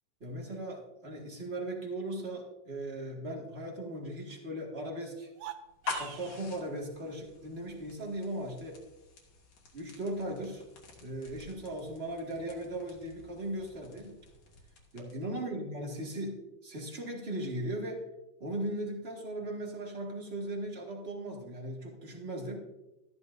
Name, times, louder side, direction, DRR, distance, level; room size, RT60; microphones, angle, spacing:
voice 1, 0.2-5.3 5.9-8.8 9.7-10.6 11.0-14.2 14.9-18.0 18.4-22.6, right 1 dB, 30° right, -1 dB, 1.3 m, -38 dB
sound 1, 5.3-6.4, right 11 dB, 75° right, 1.9 m, -44 dB
sound 2, 5.6-15.4, left 4 dB, 65° left, 3.3 m, -46 dB
13.5 x 12.0 x 2.6 m, 0.97 s
omnidirectional pair, 3.7 m